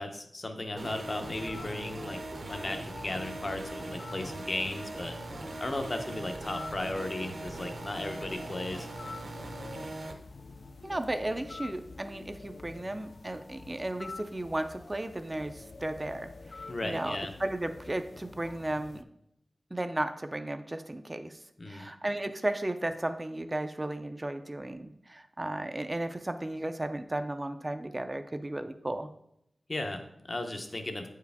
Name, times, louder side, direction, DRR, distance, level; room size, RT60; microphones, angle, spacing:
voice 1, 0.0-2.2 2.5-5.1 5.6-8.9 16.7-17.3 21.6-21.9 29.7-31.1, left 2 dB, 40° left, 6 dB, 0.7 m, -36 dB
sound 1, 0.8-10.1, right 2 dB, 55° right, 0.7 m, -41 dB
sound 2, 1.2-19.0, left 3 dB, 60° left, 0.3 m, -47 dB
voice 2, 10.8-19.0 19.7-21.4 21.7-29.1, right 1 dB, 25° right, 8 dB, 0.4 m, -35 dB
8.6 x 4.7 x 3.4 m, 0.76 s
wide cardioid pair, 100°, 0 cm